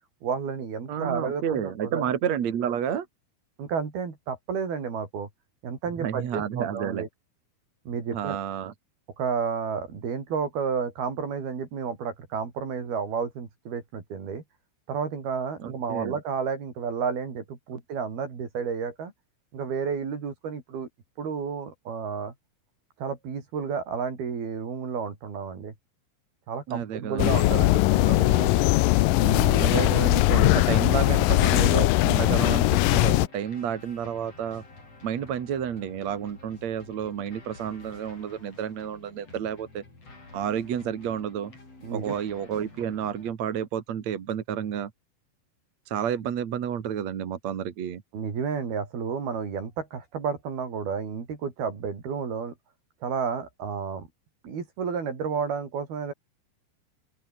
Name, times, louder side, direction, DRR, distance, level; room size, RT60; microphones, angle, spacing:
voice 1, 0.2-2.1 3.6-5.3 5.6-7.1 7.9-8.4 9.2-14.4 14.9-19.1 19.5-20.9 21.2-22.3 23.0-25.7 26.5-28.7 29.2-29.9 41.8-42.2 48.1-52.5 53.0-54.1 54.4-56.1, right 6 dB, 75° right, 6.4 m, -31 dB
voice 2, 0.9-3.1 6.0-7.1 8.1-8.7 15.6-16.2 26.7-27.5 29.6-34.6 35.0-39.8 40.3-41.5 41.9-44.9 45.9-48.0, right 8 dB, 50° right, 2.8 m, -30 dB
sound 1, 27.2-33.3, left 19 dB, 75° left, 2.1 m, -20 dB
sound 2, 31.6-43.3, left 3 dB, 40° left, 9.0 m, -49 dB
open air
omnidirectional pair, 4.5 m